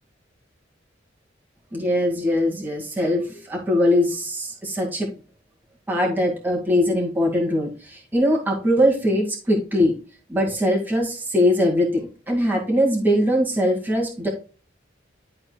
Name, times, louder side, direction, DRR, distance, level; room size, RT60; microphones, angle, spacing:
voice 1, 1.7-5.1 5.9-9.9 10.3-14.3, left 1 dB, 10° right, -2 dB, 2.1 m, -21 dB
12.0 x 4.3 x 2.3 m, 0.34 s
head